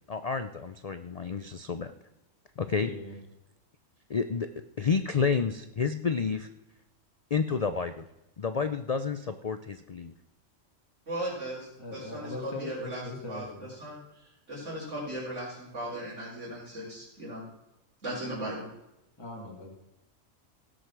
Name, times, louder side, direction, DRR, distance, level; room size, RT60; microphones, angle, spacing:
voice 1, 0.1-1.9 2.6-2.9 4.1-4.5 4.8-6.5 7.3-8.0 8.4-10.1, left 5 dB, 75° left, 10 dB, 0.3 m, -30 dB
voice 2, 2.8-3.2 11.8-13.7 19.2-19.7, left 2 dB, 20° left, -2 dB, 2.1 m, -40 dB
voice 3, 11.1-13.0 13.3-13.5 13.8-17.4 18.0-18.7, right 1 dB, 60° right, -9 dB, 4.2 m, -37 dB
17.0 x 6.5 x 6.1 m, 0.92 s
omnidirectional pair, 1.4 m